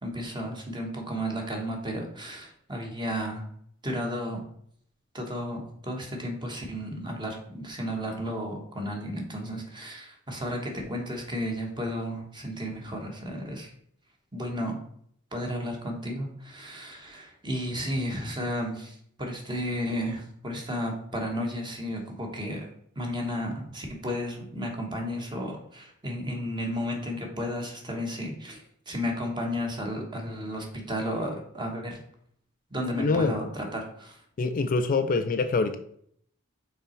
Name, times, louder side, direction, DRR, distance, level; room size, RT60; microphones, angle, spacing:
voice 1, 0.0-3.4 3.8-4.4 5.1-13.7 14.3-14.8 15.3-22.7 23.0-32.0 32.7-34.2, equal, 20° right, 1 dB, 1.3 m, -33 dB
voice 2, 33.0-33.3 34.4-35.8, left 3 dB, 40° left, 8 dB, 0.4 m, -25 dB
5.7 x 3.9 x 4.4 m, 0.66 s
head